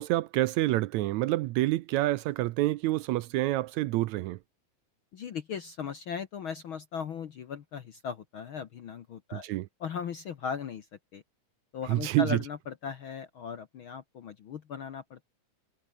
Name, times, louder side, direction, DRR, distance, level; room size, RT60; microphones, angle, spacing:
voice 1, 0.0-4.4 9.3-9.7 11.9-12.4, right 17 dB, 80° right, 1.8 m, -27 dB
voice 2, 5.1-9.5 9.8-10.9 11.1-11.2 11.7-15.3, left 7 dB, 55° left, 1.5 m, -38 dB
omnidirectional pair, 3.7 m